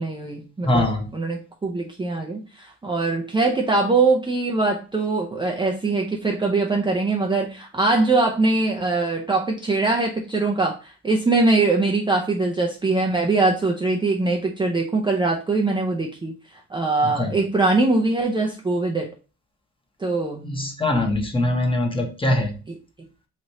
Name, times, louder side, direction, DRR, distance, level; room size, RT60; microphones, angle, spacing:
voice 1, 0.0-16.4 16.7-19.1 20.0-20.5 22.7-22.8, right 3 dB, 15° right, 0 dB, 0.5 m, -22 dB
voice 2, 0.6-1.1 17.2-17.3 20.4-22.5, left 1 dB, 15° left, 3 dB, 0.9 m, -22 dB
3.1 x 2.5 x 4.1 m, 0.34 s
cardioid pair, 90°, 30 cm